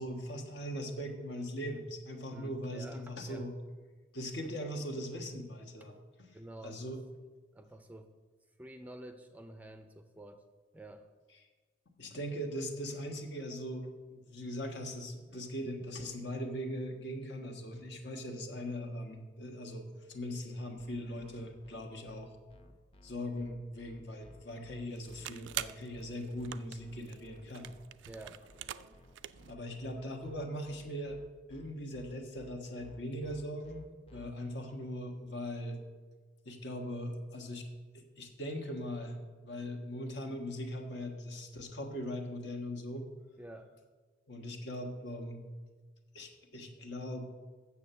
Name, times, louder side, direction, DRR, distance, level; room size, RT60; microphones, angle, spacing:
voice 1, 0.0-3.5 4.1-6.3 6.6-7.0 12.0-22.3 23.0-27.7 28.7-28.9 29.5-31.2 31.5-35.8 36.4-37.6 37.9-43.1 44.3-45.4 46.1-47.3, equal, 65° left, 3 dB, 1.4 m, -40 dB
voice 2, 2.3-3.5 5.8-5.9 6.3-7.0 7.5-8.1 8.6-10.4 10.7-11.1 15.8-15.9 28.1-28.4 34.1-34.4 43.4-43.7, right 1 dB, 10° right, 7 dB, 0.4 m, -49 dB
sound 1, 20.8-34.3, equal, 30° left, 0.8 m, -57 dB
sound 2, 24.9-29.5, right 12 dB, 75° right, 0.3 m, -45 dB
8.3 x 7.2 x 6.8 m, 1.4 s
head